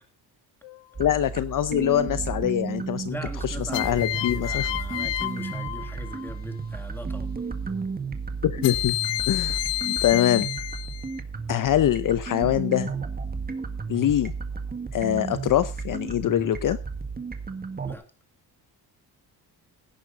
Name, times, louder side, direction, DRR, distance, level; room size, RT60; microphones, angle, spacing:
sound 1, 0.6-1.2 3.7-6.4 8.6-11.2, left 17 dB, 90° left, 0.8 m, -30 dB
sound 2, 0.9-17.9, right 5 dB, 20° right, 1.8 m, -33 dB
voice 1, 1.0-3.1 3.4-4.7 8.4-9.0 9.3-9.6 9.8-10.5 11.5-12.9 13.9-14.3 14.9-16.8, left 11 dB, 50° left, 0.7 m, -24 dB
voice 2, 3.1-7.3 17.9-18.1, left 1 dB, 5° left, 2.2 m, -40 dB
17.0 x 9.7 x 4.0 m
cardioid pair, 135°, 42 cm